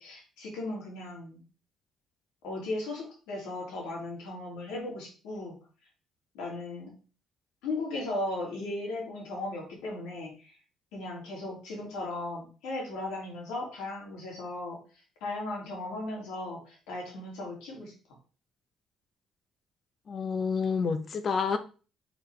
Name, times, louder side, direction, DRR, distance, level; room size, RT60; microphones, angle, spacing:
voice 1, 0.0-1.4 2.4-5.5 6.3-6.9 7.6-10.5 10.9-14.8 15.2-17.9, left 2 dB, 90° left, -2 dB, 2.8 m, -36 dB
voice 2, 20.1-21.6, left 5 dB, 50° left, 9 dB, 1.0 m, -29 dB
7.1 x 4.2 x 3.4 m, 0.36 s
supercardioid pair, 80°, 0 cm